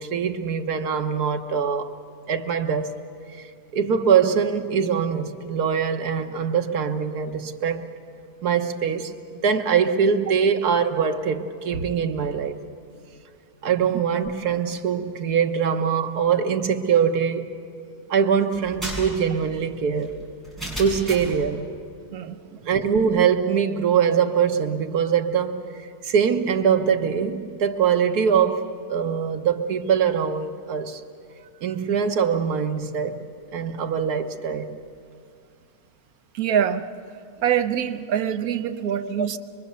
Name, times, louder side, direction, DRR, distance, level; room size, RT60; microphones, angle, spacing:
voice 1, 0.0-1.9 2.3-2.9 3.4-7.8 8.4-12.6 13.6-17.5 18.1-20.1 20.8-21.7 22.6-25.5 26.0-28.6 28.9-31.0 31.6-33.2 33.5-34.7 39.2-39.3, right 7 dB, 90° right, 1.6 m, -23 dB
sound 1, 18.5-21.4, equal, ahead, 7.1 m, -34 dB
voice 2, 22.1-22.7 36.3-36.9 37.4-39.4, right 9 dB, 75° right, 1.2 m, -25 dB
24.0 x 23.5 x 6.8 m
omnidirectional pair, 1.6 m